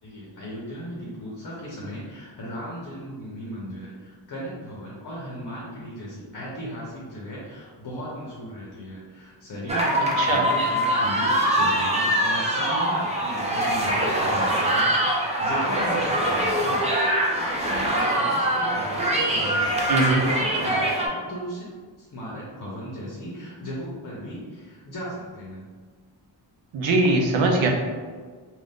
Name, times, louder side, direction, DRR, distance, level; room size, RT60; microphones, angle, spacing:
voice 1, 0.0-16.8 17.3-21.7 22.0-25.7, equal, 45° left, -5 dB, 0.7 m, -36 dB
sound 1, 9.7-21.1, right 1 dB, 15° right, 0.4 m, -23 dB
voice 2, 10.2-10.5 19.9-20.2 26.7-27.7, right 2 dB, 85° right, 2 dB, 0.6 m, -21 dB
2.5 x 2.4 x 3.5 m, 1.5 s
wide cardioid pair, 120°, 46 cm